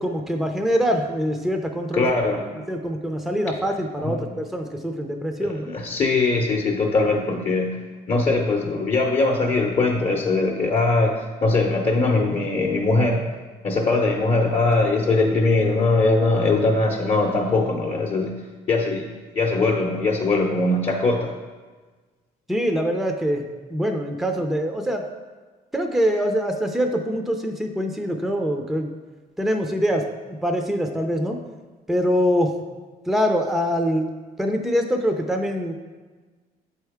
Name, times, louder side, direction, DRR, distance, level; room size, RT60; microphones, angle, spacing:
voice 1, 0.0-2.1 2.7-5.8 22.5-25.1 25.7-28.9 29.4-30.1 30.4-31.4 31.9-32.5 33.1-34.1 34.4-35.7, equal, ahead, 4 dB, 0.6 m, -24 dB
voice 2, 1.9-2.4 4.0-4.4 5.4-7.8 8.1-13.2 13.6-18.3 18.7-19.1 19.3-21.3, left 3 dB, 35° left, -1 dB, 0.8 m, -21 dB
7.5 x 4.5 x 3.5 m, 1.3 s
cardioid pair, 110°, 17 cm